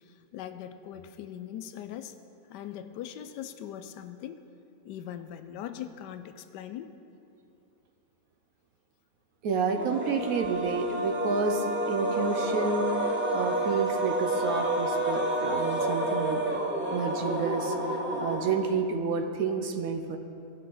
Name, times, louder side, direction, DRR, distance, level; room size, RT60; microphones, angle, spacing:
voice 1, 0.1-2.1 2.5-4.4 4.8-6.9, left 10 dB, 90° left, 9 dB, 1.2 m, -40 dB
voice 2, 9.4-16.6 16.9-20.2, right 4 dB, 65° right, 5 dB, 1.0 m, -30 dB
sound 1, 9.7-19.1, right 1 dB, 15° right, 0.4 m, -29 dB
16.5 x 5.5 x 3.8 m, 2.6 s
omnidirectional pair, 1.8 m